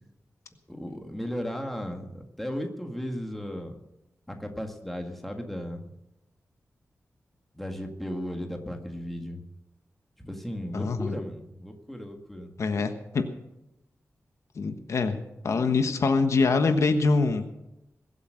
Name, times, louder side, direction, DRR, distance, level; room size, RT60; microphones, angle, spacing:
voice 1, 0.7-3.7 4.3-5.9 7.5-9.4 10.2-12.5, equal, 5° left, 3 dB, 1.8 m, -35 dB
voice 2, 10.7-11.1 12.6-13.2 14.5-15.2 15.4-17.4, left 4 dB, 65° left, 7 dB, 1.3 m, -24 dB
21.5 x 8.2 x 6.4 m, 0.89 s
wide cardioid pair, 165°, 5 cm